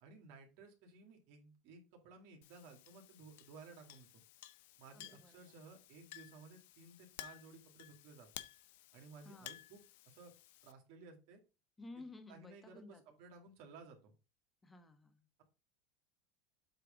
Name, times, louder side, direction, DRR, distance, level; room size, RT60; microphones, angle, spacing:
voice 1, 0.0-4.2 4.8-8.3 8.9-10.3 10.6-11.4 12.3-14.1, right 4 dB, 65° right, 3 dB, 2.3 m, -57 dB
Chink clink, 2.4-10.7, left 14 dB, 80° left, 0.6 m, -55 dB
voice 2, 4.9-5.5 9.2-9.6 11.8-13.2 14.6-15.3, left 2 dB, 15° left, 8 dB, 1.2 m, -55 dB
7.9 x 3.3 x 5.1 m, 0.30 s
supercardioid pair, 125°, 0 cm